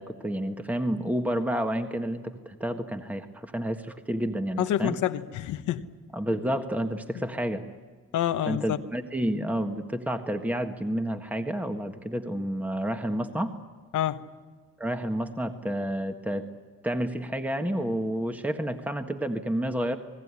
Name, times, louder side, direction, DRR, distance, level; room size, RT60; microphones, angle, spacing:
voice 1, 0.0-5.0 6.1-7.6 8.5-13.5 14.8-16.5 16.8-20.0, right 1 dB, 5° right, 6 dB, 1.5 m, -30 dB
voice 2, 4.6-5.9 8.1-8.8 13.9-14.2, left 11 dB, 80° left, 9 dB, 1.1 m, -27 dB
29.0 x 19.0 x 9.8 m, 1.5 s
cardioid pair, 90°, 30 cm